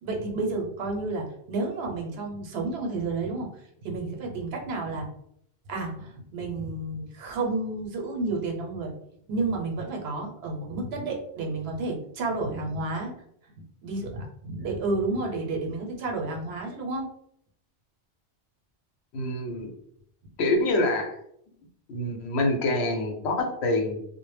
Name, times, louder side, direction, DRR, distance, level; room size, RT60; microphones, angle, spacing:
voice 1, 0.0-3.5 3.8-5.1 5.7-8.9 9.3-13.1 13.8-17.1, right 3 dB, 80° right, 1 dB, 0.8 m, -31 dB
voice 2, 19.1-19.7 20.4-21.2 21.9-24.1, left 2 dB, 85° left, 4 dB, 0.8 m, -26 dB
2.0 x 2.0 x 3.2 m, 0.71 s
omnidirectional pair, 1.1 m